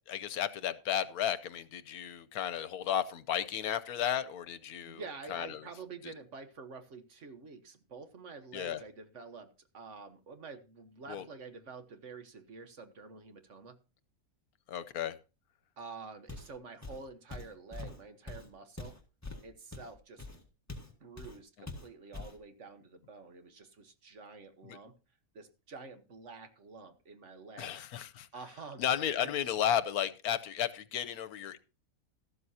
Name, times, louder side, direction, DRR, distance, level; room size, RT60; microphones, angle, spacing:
voice 1, 0.1-5.0 5.3-5.7 6.0-6.1 8.5-8.8 11.1-11.2 14.7-15.2 24.6-24.8 27.6-28.3 28.8-31.6, left 10 dB, 85° left, 13 dB, 1.3 m, -33 dB
voice 2, 4.8-9.5 9.7-13.8 15.8-19.0 19.4-20.4 20.8-25.0 25.3-27.7 28.3-28.8 29.2-29.3, right 4 dB, 55° right, 8 dB, 1.5 m, -48 dB
Walk footsteps, 16.3-16.6 16.8-20.9 21.2-21.4 21.7-22.4, left 2 dB, 10° left, 1.6 m, -44 dB
13.5 x 12.5 x 2.8 m, 0.31 s
omnidirectional pair, 1.5 m